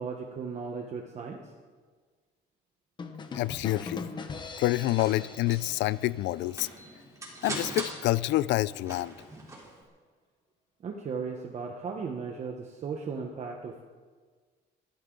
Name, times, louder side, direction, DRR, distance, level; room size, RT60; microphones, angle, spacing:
voice 1, 0.0-1.4 10.8-13.8, right 5 dB, 40° right, 2 dB, 1.1 m, -36 dB
sound 1, 3.0-6.7, left 4 dB, 25° left, 1.1 m, -41 dB
voice 2, 3.3-4.1 4.6-6.7 7.4-9.1, left 16 dB, 85° left, 19 dB, 0.5 m, -27 dB
sound 2, 4.5-9.8, right 1 dB, 15° right, 3.6 m, -42 dB
23.0 x 16.0 x 3.9 m, 1.5 s
cardioid pair, 170°, 18 cm